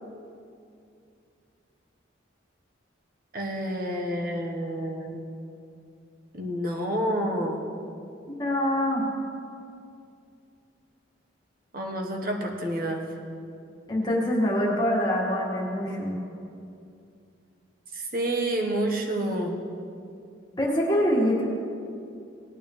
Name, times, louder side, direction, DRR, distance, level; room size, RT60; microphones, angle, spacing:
voice 1, 3.3-5.2 6.3-7.6 11.7-13.0 17.9-19.5, right 1 dB, 45° right, 1 dB, 1.4 m, -29 dB
voice 2, 8.3-9.0 13.9-16.2 20.6-21.4, equal, 20° left, -3 dB, 2.0 m, -25 dB
18.5 x 9.0 x 3.4 m, 2.5 s
head